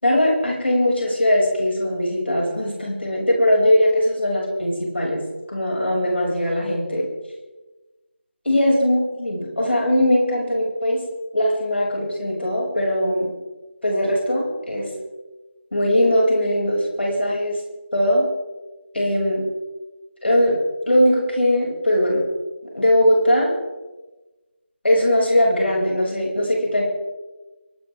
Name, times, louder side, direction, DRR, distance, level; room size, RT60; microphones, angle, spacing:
voice 1, 0.0-5.2 5.5-7.1 8.4-11.0 11.3-13.3 13.8-14.9 15.7-17.6 17.9-18.2 18.9-19.4 20.2-20.6 20.9-22.2 22.7-23.6 24.8-26.8, left 1 dB, 65° left, -2 dB, 6.7 m, -20 dB
24.0 x 13.5 x 3.7 m, 1.1 s
figure-of-eight pair, 165°, 6 cm